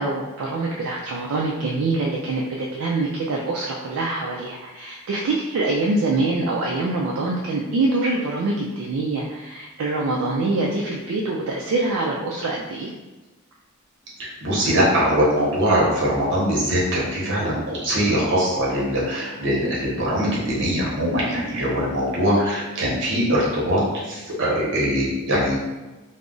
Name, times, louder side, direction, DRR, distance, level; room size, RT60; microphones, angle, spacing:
voice 1, 0.0-12.9, right 2 dB, 80° right, -2 dB, 0.4 m, -24 dB
voice 2, 14.2-23.8 24.1-25.6, equal, 60° right, -5 dB, 1.0 m, -22 dB
2.4 x 2.0 x 3.7 m, 1.1 s
head